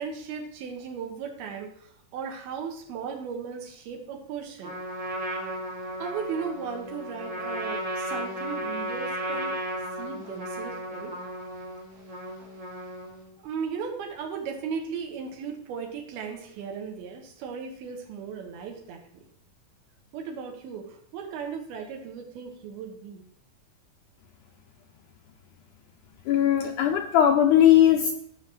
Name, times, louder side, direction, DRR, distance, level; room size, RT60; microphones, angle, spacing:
voice 1, 0.0-4.7 6.0-9.6 10.0-11.2 13.4-19.2 20.1-23.2, right 6 dB, 85° right, 2 dB, 3.4 m, -36 dB
Trumpet, 4.6-13.3, right 1 dB, 35° right, 3.1 m, -34 dB
voice 2, 26.3-28.1, left 10 dB, 85° left, 4 dB, 1.8 m, -19 dB
16.5 x 6.0 x 3.1 m, 0.71 s
omnidirectional pair, 4.3 m